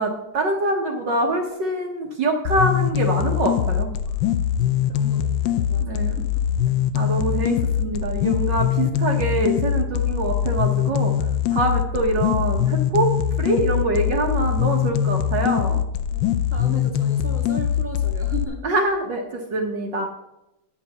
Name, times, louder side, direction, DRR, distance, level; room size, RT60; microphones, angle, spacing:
voice 1, 0.0-3.9 5.8-6.2 6.9-11.1 11.5-13.1 13.4-15.8 18.6-20.1, right 2 dB, 60° right, 1 dB, 1.6 m, -24 dB
sound 1, 2.4-18.4, left 10 dB, 70° left, 1.2 m, -22 dB
voice 2, 4.9-6.1 8.7-9.0 16.1-18.7, equal, 5° right, 0 dB, 1.7 m, -36 dB
10.0 x 5.8 x 6.9 m, 0.90 s
omnidirectional pair, 2.4 m